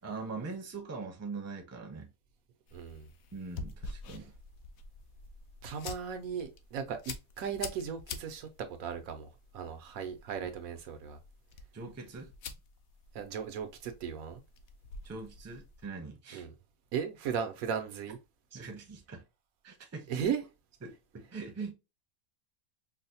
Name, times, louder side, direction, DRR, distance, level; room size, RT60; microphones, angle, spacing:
voice 1, 0.0-2.1 3.3-4.3 10.4-10.5 11.7-12.3 15.0-16.5 18.5-19.2 19.6-20.2 20.8-21.7, right 4 dB, 15° right, 0.5 m, -42 dB
sound 1, 2.7-15.9, left 5 dB, 65° left, 0.8 m, -47 dB
voice 2, 2.7-3.1 5.6-9.3 9.5-11.2 13.1-14.4 16.3-16.5 16.9-18.2 20.1-20.4, right 7 dB, 90° right, 1.1 m, -36 dB
4.6 x 2.1 x 2.7 m
omnidirectional pair, 1.4 m